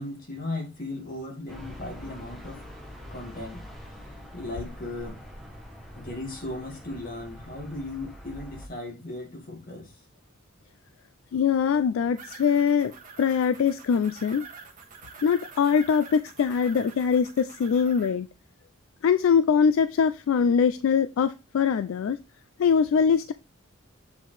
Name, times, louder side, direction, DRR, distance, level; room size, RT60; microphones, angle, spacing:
voice 1, 0.0-2.6 3.1-3.6 4.0-4.1 4.3-5.2 5.9-9.9, left 2 dB, 40° left, 2.0 m, -36 dB
sound 1, 1.5-8.7, equal, ahead, 1.0 m, -44 dB
voice 2, 11.3-12.9 13.2-14.4 15.2-18.3 19.0-22.2 22.6-23.3, left 6 dB, 70° left, 0.3 m, -22 dB
sound 2, 12.1-18.1, right 5 dB, 40° right, 1.4 m, -46 dB
6.9 x 4.3 x 3.2 m
head